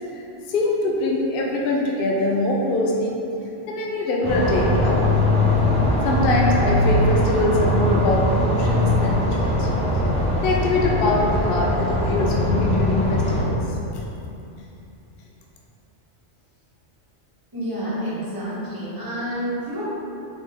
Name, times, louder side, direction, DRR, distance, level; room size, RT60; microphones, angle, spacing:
voice 1, 0.5-3.2 3.7-5.1 6.0-9.7 10.4-13.6, left 2 dB, 60° left, -2 dB, 0.7 m, -23 dB
sound 1, 4.2-13.4, left 1 dB, 5° left, 0.5 m, -21 dB
voice 2, 17.5-19.8, equal, 20° right, -12 dB, 1.4 m, -29 dB
4.1 x 3.5 x 3.5 m, 2.8 s
omnidirectional pair, 1.2 m